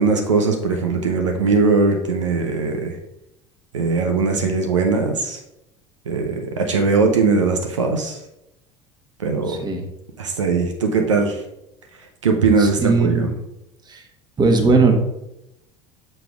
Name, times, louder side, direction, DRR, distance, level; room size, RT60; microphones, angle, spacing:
voice 1, 0.0-3.0 3.7-5.4 6.1-8.2 9.2-9.6 10.2-11.4 12.2-13.3, right 4 dB, 85° right, 3 dB, 0.7 m, -20 dB
voice 2, 9.5-9.8 12.6-13.3 13.9-14.0 14.4-14.9, right 3 dB, 25° right, 4 dB, 1.3 m, -18 dB
6.7 x 6.2 x 2.4 m, 0.86 s
hypercardioid pair, 70°, 15 cm